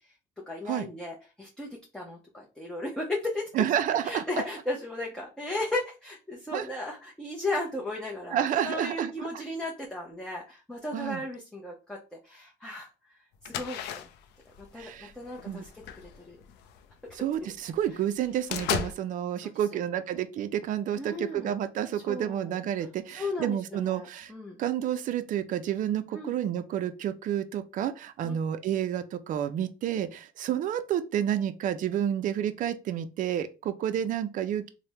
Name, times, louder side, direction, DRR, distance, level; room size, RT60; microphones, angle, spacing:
voice 1, 0.5-3.5 3.9-12.0 12.2-12.9 13.4-13.8 14.7-16.4 19.4-19.8 21.0-21.5 21.9-24.6 26.1-26.3 28.2-28.4, left 2 dB, 5° left, 0.6 m, -35 dB
voice 2, 3.6-4.2 6.5-6.7 8.3-9.1 10.9-11.2 14.8-15.1 15.5-15.6 17.1-24.3 24.6-34.7, right 10 dB, 50° right, 0.4 m, -30 dB
sound 1, 13.4-17.2 17.7-17.8 18.1-18.9, left 8 dB, 85° left, 0.4 m, -35 dB
3.3 x 2.1 x 2.7 m
cardioid pair, 110°, 17 cm